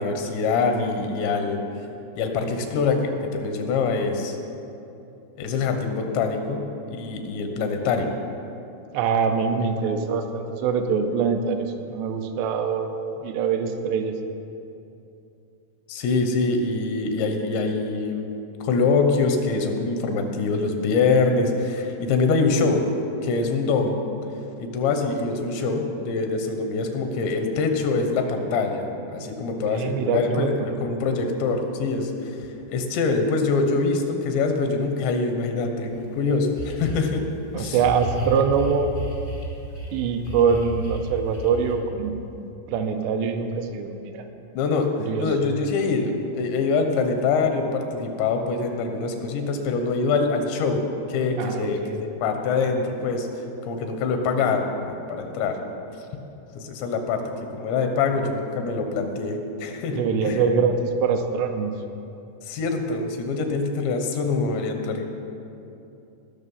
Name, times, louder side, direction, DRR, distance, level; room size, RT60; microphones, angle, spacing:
voice 1, 0.0-1.6 2.2-4.4 5.4-6.6 6.9-8.1 15.9-18.3 18.6-22.8 23.2-24.0 24.6-32.4 32.7-37.3 37.5-37.8 44.6-44.9 45.2-50.8 51.1-53.3 53.6-55.6 56.6-57.2 57.5-60.5 62.5-65.0, left 4 dB, 85° left, 5 dB, 3.3 m, -24 dB
voice 2, 8.9-14.1 29.6-30.7 37.5-38.9 39.9-44.3 45.1-45.3 51.4-52.0 59.9-61.7, right 6 dB, 85° right, 6 dB, 2.8 m, -24 dB
sound 1, 35.9-36.0 36.6-37.1 37.8-39.9 40.2-41.7, equal, 65° left, 0.6 m, -32 dB
19.5 x 6.5 x 5.5 m, 2.8 s
omnidirectional pair, 5.0 m